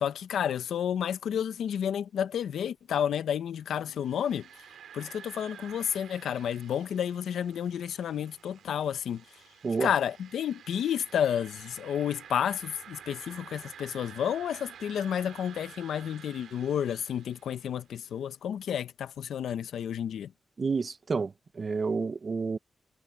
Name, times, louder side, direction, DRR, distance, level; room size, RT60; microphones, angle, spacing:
voice 1, 0.0-4.5 4.9-9.3 9.8-20.3, left 9 dB, 85° left, 1.0 m, -31 dB
sound 1, 3.9-17.9, right 8 dB, 85° right, 2.7 m, -50 dB
voice 2, 20.6-22.6, right 4 dB, 50° right, 1.1 m, -30 dB
cardioid pair, 60°, 0 cm